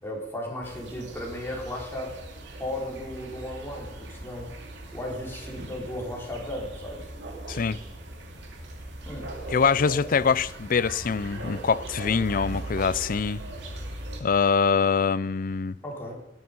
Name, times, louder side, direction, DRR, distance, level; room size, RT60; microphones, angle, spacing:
voice 1, 0.0-2.2 2.6-4.5 4.9-7.1 9.0-9.3 15.8-16.2, left 1 dB, 15° left, 4.4 m, -35 dB
sound 1, 0.6-14.2, right 2 dB, 80° right, 2.7 m, -39 dB
voice 2, 9.5-13.4 14.2-15.8, left 5 dB, 50° left, 0.5 m, -24 dB
18.5 x 11.5 x 5.4 m
head